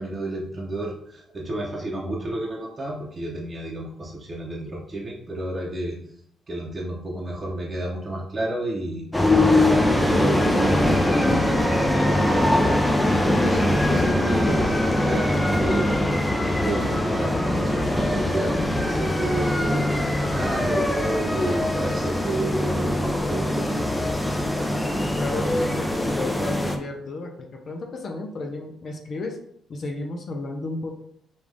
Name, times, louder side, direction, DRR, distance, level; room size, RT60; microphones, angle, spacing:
voice 1, 0.0-6.0 6.5-12.8 13.2-15.9 16.4-19.9 20.3-23.8, right 1 dB, 35° right, -3 dB, 0.8 m, -31 dB
sound 1, 9.1-26.8, left 1 dB, 10° left, 0.5 m, -22 dB
voice 2, 25.2-29.4 29.7-31.0, left 2 dB, 50° left, 2 dB, 0.6 m, -33 dB
5.2 x 2.5 x 3.4 m, 0.69 s
cardioid pair, 90°, 0 cm